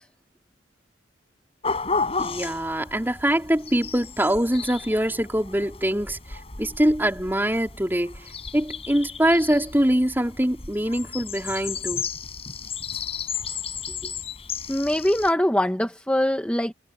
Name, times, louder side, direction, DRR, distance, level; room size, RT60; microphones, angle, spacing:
sound 1, 1.6-15.3, left 5 dB, 35° left, 5.3 m, -34 dB
voice 1, 2.2-12.1, right 1 dB, 10° right, 3.9 m, -24 dB
voice 2, 14.7-16.7, left 1 dB, 5° left, 1.3 m, -23 dB
head